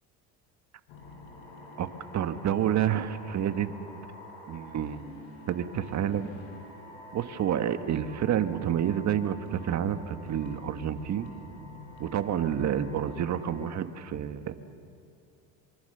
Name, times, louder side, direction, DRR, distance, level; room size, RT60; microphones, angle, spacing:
sound 1, 0.9-13.8, left 1 dB, 85° left, 7.6 m, -48 dB
voice 1, 2.1-3.7 4.5-5.0 5.5-6.3 7.1-11.3 12.0-14.5, right 10 dB, 45° right, 9 dB, 1.5 m, -29 dB
24.5 x 24.0 x 6.8 m, 2.4 s
supercardioid pair, 95°, 37 cm